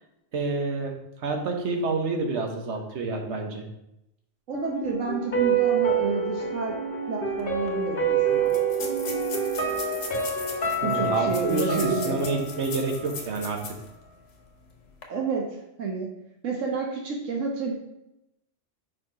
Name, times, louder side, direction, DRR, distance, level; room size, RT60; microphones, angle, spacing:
voice 1, 0.3-0.9 1.2-3.6 10.8-13.6, right 3 dB, 65° right, 3 dB, 1.2 m, -28 dB
sound 1, 4.5-13.5 13.8-13.9, right 5 dB, 50° left, 1.4 m, -27 dB
voice 2, 4.5-6.8 7.1-8.5 10.8-12.3 15.1-15.4 15.8-16.1 16.4-17.7, right 4 dB, 90° right, 0 dB, 1.3 m, -29 dB
sound 2, 7.4-7.5 7.7-7.8 8.5-13.9 14.3-14.4 14.9-15.0, left 4 dB, 70° left, 1.3 m, -39 dB
5.0 x 4.6 x 4.7 m, 0.86 s
omnidirectional pair, 1.3 m